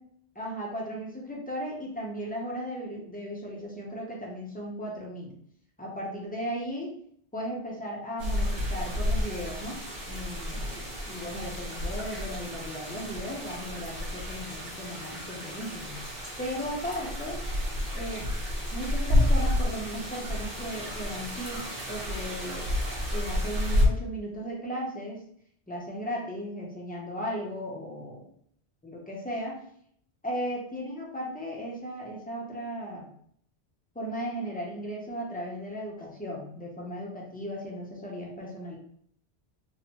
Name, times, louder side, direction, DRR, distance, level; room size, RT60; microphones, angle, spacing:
voice 1, 0.3-5.4 5.8-6.9 7.3-9.8 10.1-16.0 16.4-17.4 17.9-18.4 18.7-22.7 23.1-25.2 25.7-28.3 28.8-29.6 30.2-33.1 33.9-38.8, equal, 10° left, -3 dB, 0.5 m, -36 dB
sound 1, 8.2-23.9, left 1 dB, 45° right, 0.9 m, -30 dB
3.1 x 2.0 x 2.9 m, 0.65 s
omnidirectional pair, 1.1 m